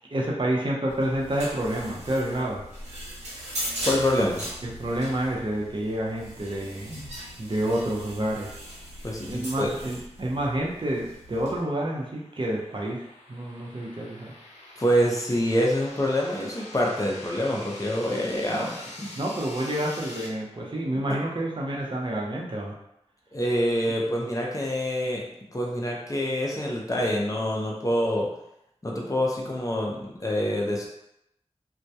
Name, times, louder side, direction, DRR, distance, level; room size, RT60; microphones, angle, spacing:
voice 1, 0.1-2.6 4.6-8.5 9.2-13.0 13.3-14.3 18.5-18.7 19.2-22.7, right 1 dB, 45° right, -3 dB, 0.6 m, -29 dB
sound 1, 0.9-11.6, equal, 85° right, 0.7 m, -39 dB
voice 2, 3.8-4.4 9.0-9.7 14.8-19.1 23.3-25.2 25.5-28.3 28.8-30.9, equal, 30° left, -2 dB, 0.5 m, -26 dB
sound 2, 11.3-20.3, left 1 dB, 85° left, 0.5 m, -45 dB
2.2 x 2.1 x 2.7 m, 0.81 s
wide cardioid pair, 50°, 11 cm